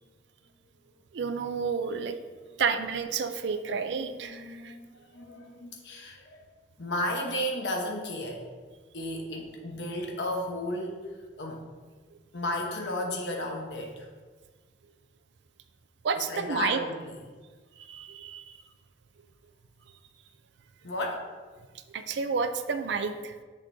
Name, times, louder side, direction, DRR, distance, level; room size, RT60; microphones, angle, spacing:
voice 1, 1.1-2.2 2.6-4.7 16.0-16.8 17.8-18.6 21.9-23.4, right 5 dB, 70° right, 8 dB, 0.4 m, -30 dB
voice 2, 4.2-6.5 6.8-8.4 8.9-11.1 11.4-11.7 12.3-14.1 16.3-17.2 20.8-21.3, left 1 dB, 75° left, 1 dB, 1.0 m, -33 dB
7.1 x 6.6 x 2.7 m, 1.4 s
head